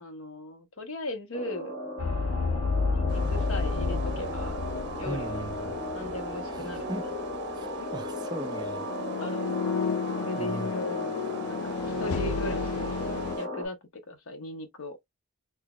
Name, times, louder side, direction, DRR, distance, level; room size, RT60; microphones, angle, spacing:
voice 1, 0.0-1.7 2.9-4.6 5.0-5.4 5.9-7.1 9.1-9.5 10.2-11.1 11.5-13.0 13.4-13.8 14.1-15.0, left 1 dB, 70° left, 0.9 m, -38 dB
sound 1, 1.3-13.7, equal, 25° left, 1.4 m, -36 dB
sound 2, 2.0-6.8 7.1-7.3 8.8-13.4, left 4 dB, 85° left, 0.4 m, -31 dB
sound 3, 3.1-13.5, right 2 dB, 50° right, 0.7 m, -45 dB
voice 2, 5.0-5.8 6.5-7.1 7.6-8.9 9.3-9.4 10.1-10.7, right 2 dB, 20° right, 0.3 m, -39 dB
3.8 x 2.7 x 2.2 m
head